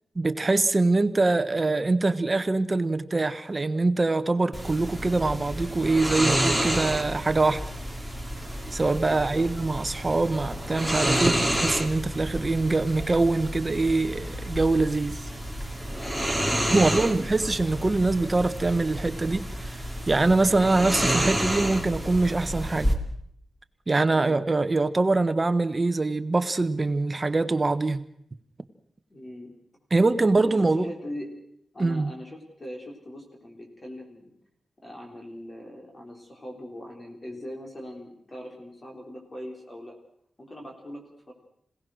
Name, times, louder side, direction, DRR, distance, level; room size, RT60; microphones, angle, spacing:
voice 1, 0.1-7.6 8.7-15.2 16.7-19.8 20.1-22.9 23.9-28.0 29.9-30.9 31.8-32.1, right 3 dB, 25° right, 11 dB, 1.2 m, -24 dB
sound 1, 4.5-22.9, right 1 dB, 5° left, 2.6 m, -30 dB
voice 2, 9.0-9.5 16.4-17.1 29.1-29.6 30.3-31.3 31.7-34.3 34.8-39.9 40.4-41.3, left 1 dB, 30° left, 0 dB, 3.9 m, -41 dB
27.0 x 17.5 x 6.4 m, 0.71 s
wide cardioid pair, 135°, 0 cm